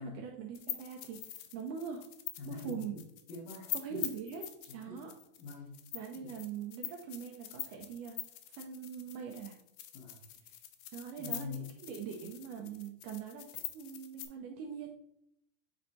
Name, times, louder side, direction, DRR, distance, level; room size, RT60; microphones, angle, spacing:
voice 1, 0.0-2.1 2.5-3.0 3.7-4.4 4.7-5.1 5.9-8.2 8.5-9.6 10.5-10.6 10.9-13.5 13.7-14.9, right 7 dB, 85° right, 1 dB, 1.9 m, -42 dB
sound 1, 0.5-14.3, left 12 dB, 85° left, 1.8 m, -44 dB
voice 2, 2.4-3.0 3.3-4.1 4.8-5.1 5.4-5.7 6.2-6.3 9.9-10.2 11.2-11.8, left 4 dB, 70° left, -4 dB, 2.3 m, -45 dB
9.2 x 4.4 x 2.7 m, 0.76 s
omnidirectional pair, 4.3 m